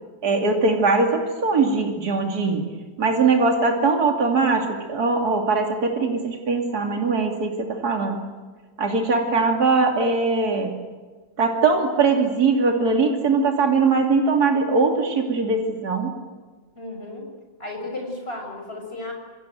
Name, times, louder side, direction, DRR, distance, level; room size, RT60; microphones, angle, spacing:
voice 1, 0.2-2.6 3.0-8.2 8.8-10.7 11.4-16.1, right 4 dB, 55° right, 2 dB, 3.2 m, -21 dB
voice 2, 16.7-17.2 17.6-19.1, left 2 dB, 30° left, 3 dB, 6.5 m, -33 dB
27.0 x 22.5 x 9.2 m, 1.4 s
omnidirectional pair, 2.1 m